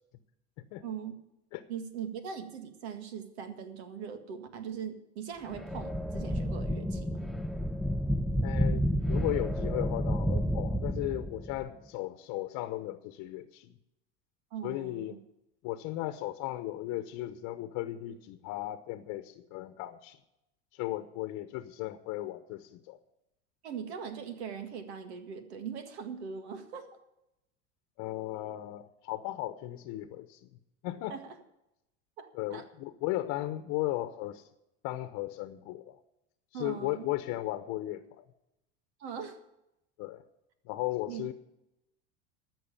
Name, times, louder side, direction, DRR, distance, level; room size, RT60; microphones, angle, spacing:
voice 1, 0.8-1.1 1.7-7.3 14.5-15.2 23.6-26.9 31.1-31.4 32.2-32.6 36.5-37.1 39.0-39.4 41.1-41.2, right 7 dB, 85° right, 8 dB, 1.9 m, -41 dB
sound 1, 5.5-11.6, equal, ahead, 0.5 m, -30 dB
voice 2, 8.4-13.7 14.6-15.2 15.6-20.2 20.7-23.0 28.0-30.5 30.8-31.2 32.3-34.4 34.8-36.0 36.5-38.2 40.0-40.2 40.6-41.3, left 16 dB, 60° left, 10 dB, 1.0 m, -36 dB
14.0 x 6.2 x 9.9 m, 0.87 s
supercardioid pair, 105°, 32 cm